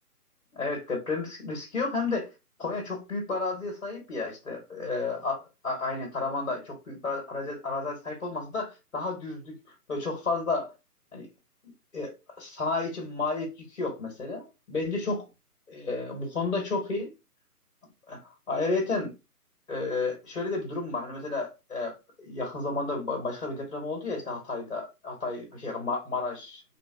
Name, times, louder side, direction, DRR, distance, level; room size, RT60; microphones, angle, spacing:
voice 1, 0.5-2.3 2.6-5.4 5.6-9.5 9.9-10.7 11.1-11.3 11.9-15.3 15.7-17.1 18.1-18.2 18.5-19.1 19.7-26.6, left 3 dB, 50° left, 1.0 m, -32 dB
2.9 x 2.1 x 2.2 m
hypercardioid pair, 170°, 47 cm